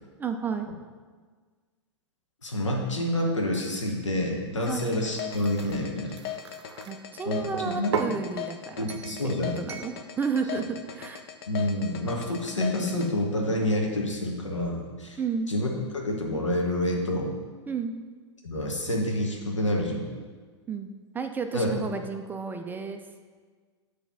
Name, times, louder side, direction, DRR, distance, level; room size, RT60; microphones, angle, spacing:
voice 1, 0.2-0.7 4.7-4.8 6.9-8.9 9.2-11.2 15.2-15.5 17.7-18.0 20.7-20.9 21.1-23.0, right 6 dB, 10° right, 6 dB, 0.3 m, -32 dB
voice 2, 2.4-6.1 7.3-7.4 7.6-8.0 8.8-9.6 11.5-15.2 15.5-17.3 18.4-20.1 21.5-21.7, left 1 dB, 85° left, 0 dB, 1.2 m, -28 dB
sound 1, 4.6-6.9 7.5-8.2 8.9-9.2 9.7-9.9, right 6 dB, 65° right, 0.6 m, -35 dB
sound 2, 4.7-13.1, left 10 dB, 55° left, 0.6 m, -38 dB
7.0 x 3.4 x 5.7 m, 1.5 s
figure-of-eight pair, 105°, 15 cm